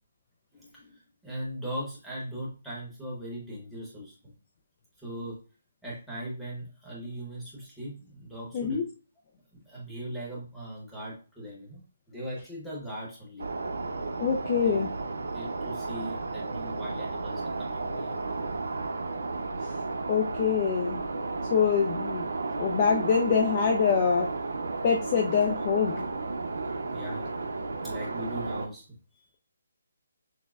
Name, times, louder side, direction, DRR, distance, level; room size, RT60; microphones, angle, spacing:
voice 1, 0.5-4.3 5.0-5.4 5.8-8.8 9.5-13.5 14.6-14.8 15.3-18.2 26.9-27.3 27.8-29.2, equal, ahead, -7 dB, 0.9 m, -39 dB
voice 2, 8.5-8.9 14.2-14.9 20.1-21.0 21.5-22.2 22.6-24.3 24.8-26.0, left 6 dB, 20° left, 2 dB, 0.3 m, -25 dB
sound 1, 13.4-28.7, right 3 dB, 85° right, 0.6 m, -33 dB
6.1 x 2.1 x 2.4 m, 0.35 s
hypercardioid pair, 180°, 0 cm